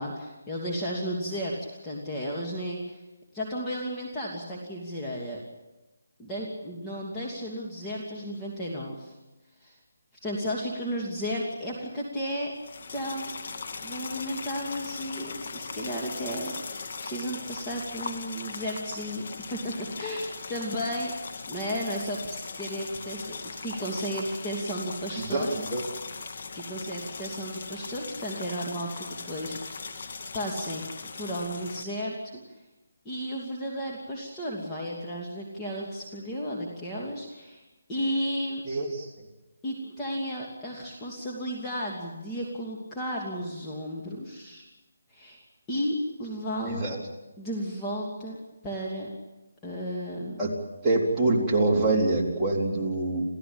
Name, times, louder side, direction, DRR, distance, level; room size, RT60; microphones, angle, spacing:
voice 1, 0.0-1.6 1.8-3.0 3.3-5.4 6.2-9.1 9.6-9.8 10.2-12.5 12.9-13.3 13.8-21.1 21.5-25.6 26.5-29.9 30.3-30.8 31.1-32.2 33.0-37.6 37.9-38.6 39.6-44.6 45.1-45.4 45.7-46.9 47.4-48.4 48.6-49.1 49.6-50.4, equal, 10° left, -4 dB, 2.7 m, -33 dB
sound 1, 12.6-31.8, left 4 dB, 50° left, 2.1 m, -39 dB
voice 2, 25.2-25.8 38.7-39.1 46.7-47.0 50.4-50.5 50.8-53.2, right 2 dB, 5° right, -7 dB, 3.9 m, -25 dB
28.0 x 16.0 x 8.8 m, 1.1 s
hypercardioid pair, 165°, 0 cm